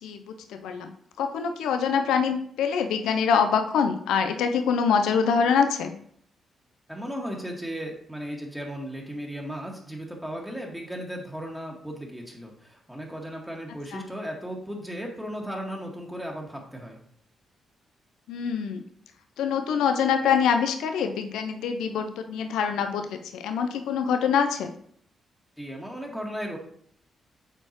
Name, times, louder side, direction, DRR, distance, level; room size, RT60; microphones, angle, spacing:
voice 1, 0.0-0.9 1.2-5.9 13.9-14.0 18.3-18.8 19.4-24.7, left 6 dB, 80° left, 6 dB, 0.5 m, -25 dB
voice 2, 6.9-17.0 25.6-26.6, equal, 5° right, -1 dB, 1.7 m, -36 dB
7.7 x 4.4 x 3.0 m, 0.63 s
supercardioid pair, 50°, 0 cm